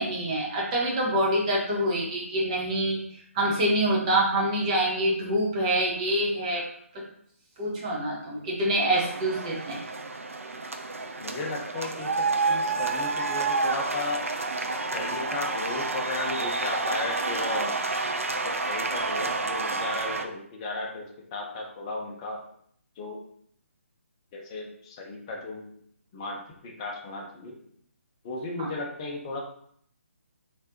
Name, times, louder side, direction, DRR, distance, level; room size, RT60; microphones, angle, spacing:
voice 1, 0.0-3.0 3.3-6.7 6.9-7.0 7.6-9.8 28.6-28.7, right 1 dB, 25° right, -4 dB, 1.1 m, -26 dB
sound 1, 8.9-20.2, right 3 dB, 70° right, 0.5 m, -29 dB
voice 2, 11.2-14.2 14.9-17.9 18.4-22.4 23.0-23.2 24.3-25.6 26.1-27.6 28.2-29.4, left 2 dB, 25° left, 0 dB, 0.7 m, -35 dB
3.3 x 3.3 x 2.8 m, 0.65 s
figure-of-eight pair, 140°, 8 cm